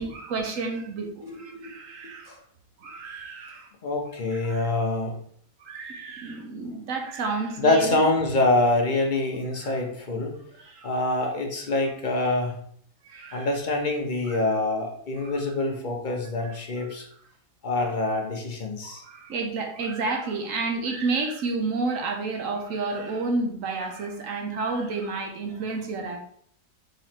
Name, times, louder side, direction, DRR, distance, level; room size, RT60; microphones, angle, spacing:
voice 1, 0.0-2.3 2.8-3.7 4.3-4.7 5.6-8.1 9.6-9.7 10.6-10.9 13.1-13.5 14.3-14.5 15.2-15.3 18.8-26.2, right 3 dB, 65° right, 3 dB, 1.1 m, -30 dB
voice 2, 1.2-1.8 2.3-2.4 3.8-5.2 7.6-10.4 10.8-12.6 13.3-17.1 17.6-19.0, left 2 dB, 40° left, 1 dB, 0.8 m, -25 dB
3.9 x 3.1 x 4.3 m, 0.63 s
omnidirectional pair, 1.6 m